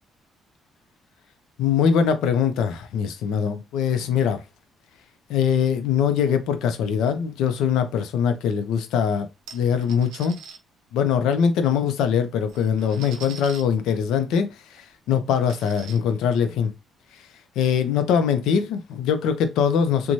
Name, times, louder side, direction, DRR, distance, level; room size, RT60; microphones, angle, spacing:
voice 1, 1.6-4.4 5.3-9.3 9.5-10.4 10.9-16.7 17.6-20.1, left 7 dB, 85° left, 0.5 m, -22 dB
sound 1, 9.5-10.6 11.9-12.0 12.3-13.6 14.3-14.4 14.8-14.9 15.3-16.0, right 6 dB, 90° right, 0.5 m, -43 dB
3.0 x 2.2 x 2.6 m
cardioid pair, 95°, 0 cm